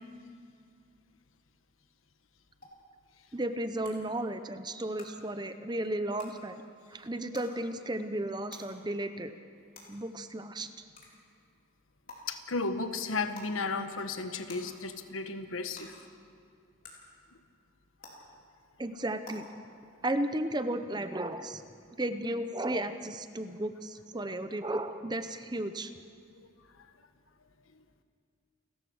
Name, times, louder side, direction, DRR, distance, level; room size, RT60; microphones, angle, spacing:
sound 1, 2.6-2.7 3.8-3.9 5.0-5.1 6.2-6.3 7.3-7.5 8.5-8.6 9.7-9.8 11.0-11.1 12.1-12.2 13.3-13.5 14.5-14.6 15.7-15.8 16.8-16.9 18.0-18.1 19.2-19.3, left 4 dB, 45° left, 4.3 m, -48 dB
voice 1, 3.3-6.6 6.9-9.3 9.9-10.7 18.8-19.4 20.0-21.6 21.9-25.9, right 1 dB, 20° right, 10 dB, 0.8 m, -34 dB
voice 2, 12.3-16.0 24.2-24.3 26.3-26.5 27.7-27.8, left 3 dB, 85° left, 9 dB, 1.3 m, -34 dB
29.5 x 14.0 x 6.4 m, 2.4 s
head